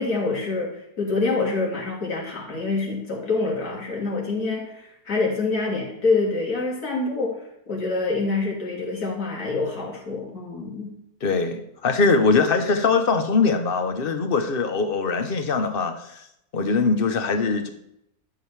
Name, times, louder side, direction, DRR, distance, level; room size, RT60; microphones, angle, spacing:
voice 1, 0.0-10.9, left 3 dB, 65° left, -2 dB, 2.6 m, -26 dB
voice 2, 11.2-16.2 16.5-17.7, left 4 dB, 45° left, 7 dB, 0.9 m, -22 dB
11.5 x 7.0 x 3.3 m, 0.77 s
omnidirectional pair, 1.8 m